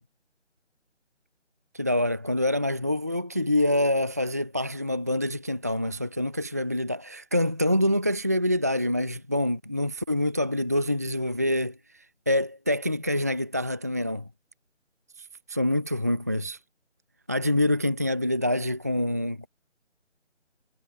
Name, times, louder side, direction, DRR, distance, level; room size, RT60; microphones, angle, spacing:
voice 1, 1.7-14.3 15.2-16.6 17.3-19.5, left 1 dB, 15° right, 0.7 m, -26 dB
figure-of-eight pair, 165°, 37 cm